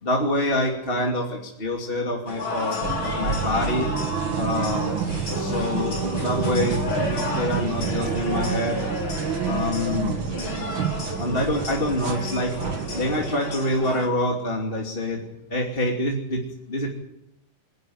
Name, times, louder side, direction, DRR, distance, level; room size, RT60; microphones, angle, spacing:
voice 1, 0.0-3.9 4.3-5.0 5.3-8.8 9.5-10.2 11.2-12.5 12.9-15.2 15.5-16.4 16.7-16.9, left 1 dB, 15° left, -1 dB, 2.4 m, -26 dB
sound 1, 2.3-14.1, left 2 dB, 35° left, 4.4 m, -32 dB
sound 2, 2.8-13.4, right 7 dB, 65° right, 1.2 m, -29 dB
26.5 x 11.5 x 9.4 m, 0.82 s
omnidirectional pair, 4.0 m